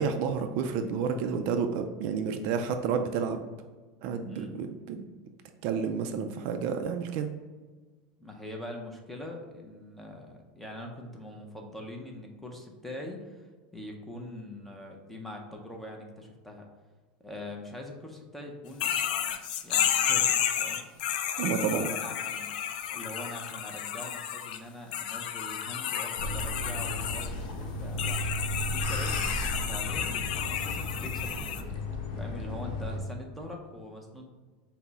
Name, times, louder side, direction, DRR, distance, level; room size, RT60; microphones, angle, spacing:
voice 1, 0.0-3.5 4.0-5.0 5.6-7.3 21.4-21.9, right 6 dB, 50° right, 6 dB, 0.3 m, -30 dB
voice 2, 4.3-4.6 8.2-13.5 13.7-16.7 17.2-18.9 19.6-20.9 21.6-22.5 22.9-28.2 28.7-31.5 32.2-34.3, left 1 dB, 5° left, 1 dB, 0.5 m, -43 dB
sound 1, 18.8-24.6 24.9-27.3 28.0-31.6, left 9 dB, 85° left, 0.4 m, -31 dB
sound 2, 26.2-33.0, left 1 dB, 60° left, 0.9 m, -34 dB
5.7 x 2.0 x 4.0 m, 1.3 s
supercardioid pair, 160°, 4 cm